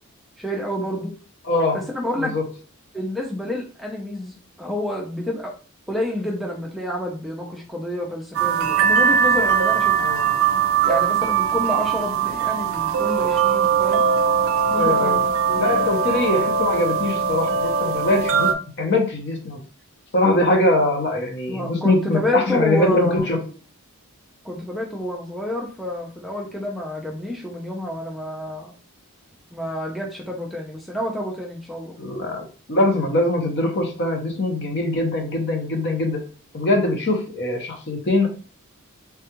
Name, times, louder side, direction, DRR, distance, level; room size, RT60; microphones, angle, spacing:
voice 1, 0.4-1.1 1.7-2.3 2.9-5.5 5.9-10.0 10.8-14.1 14.7-15.8 21.5-23.3 24.4-28.7 29.5-32.0, left 1 dB, ahead, -1 dB, 0.4 m, -28 dB
voice 2, 1.4-1.8 2.2-2.4 10.0-10.4 14.8-15.2 15.6-18.5 18.8-19.6 20.1-23.4 32.0-32.4 32.7-36.2 36.5-38.3, left 2 dB, 50° left, 3 dB, 0.7 m, -22 dB
sound 1, 8.4-18.5, right 6 dB, 65° right, 0.4 m, -20 dB
3.4 x 2.3 x 2.9 m, 0.38 s
head